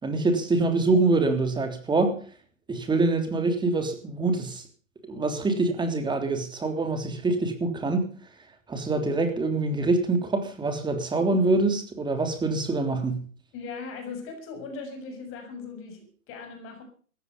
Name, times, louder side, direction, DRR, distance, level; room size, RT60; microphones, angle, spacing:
voice 1, 0.0-2.2 2.7-4.6 5.0-8.1 8.7-13.3, right 3 dB, 10° right, 3.4 m, -25 dB
voice 2, 13.5-16.8, left 4 dB, 30° left, 6.9 m, -39 dB
17.5 x 15.0 x 5.4 m
hypercardioid pair, 125°, 40 cm